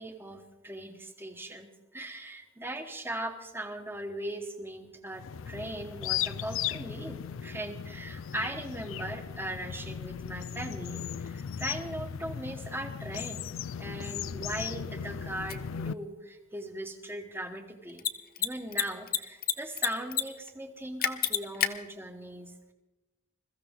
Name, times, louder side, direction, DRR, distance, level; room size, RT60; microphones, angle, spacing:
voice 1, 0.0-13.4 13.8-18.1 18.4-22.7, right 1 dB, 10° right, 5 dB, 1.3 m, -39 dB
sound 1, 5.1-15.9, left 8 dB, 70° left, 0.4 m, -37 dB
Mechanisms, 15.5-15.6 17.9-18.1 18.4-18.5 18.7-19.5 19.8-20.2 20.5-20.6 21.0-21.7, left 11 dB, 45° left, 0.7 m, -27 dB
21.5 x 14.5 x 3.7 m, 1.0 s
head